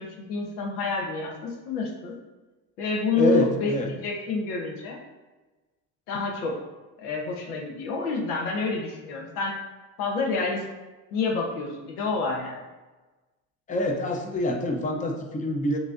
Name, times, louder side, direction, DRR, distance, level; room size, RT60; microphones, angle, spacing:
voice 1, 0.0-2.1 2.8-5.0 6.1-6.6 7.0-9.6 10.0-10.6 11.1-12.6, left 3 dB, 90° left, 1 dB, 0.9 m, -28 dB
voice 2, 3.2-3.9 13.7-15.8, left 2 dB, 15° left, 3 dB, 0.6 m, -26 dB
6.0 x 2.7 x 2.5 m, 1.2 s
supercardioid pair, 85°, 45 cm